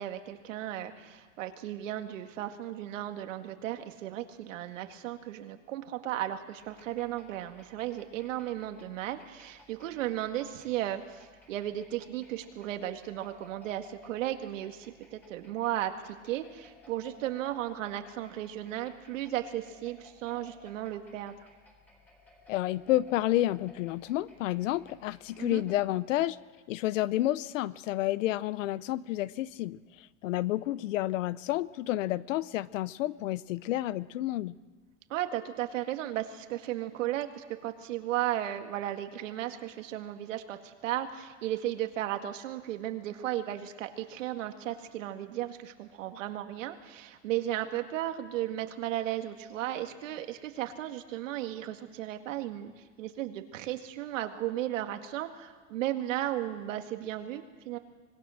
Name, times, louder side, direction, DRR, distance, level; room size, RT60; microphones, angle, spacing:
voice 1, 0.0-21.4 25.4-25.6 35.1-57.8, right 13 dB, 90° right, 6 dB, 2.0 m, -35 dB
sound 1, 6.6-25.9, left 2 dB, 5° left, 3.7 m, -59 dB
voice 2, 22.5-26.4 26.7-34.6, left 15 dB, 90° left, 18 dB, 0.8 m, -30 dB
25.5 x 20.5 x 6.5 m, 1.4 s
supercardioid pair, 150°, 37 cm